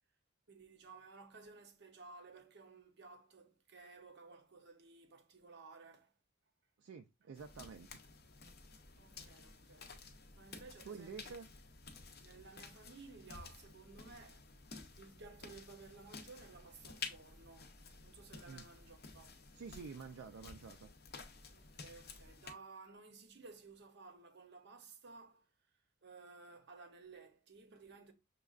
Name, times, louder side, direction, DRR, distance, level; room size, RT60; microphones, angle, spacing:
voice 1, 0.5-6.1 9.0-10.0 10.3-11.3 12.2-19.4 21.5-25.5 26.0-28.1, right 4 dB, 50° right, 0.7 m, -56 dB
voice 2, 6.8-8.0 10.9-11.5 18.5-18.6 19.5-20.9, right 5 dB, 70° right, 0.4 m, -49 dB
sound 1, 7.3-22.5, left 4 dB, 45° left, 0.6 m, -53 dB
6.3 x 2.3 x 2.4 m
head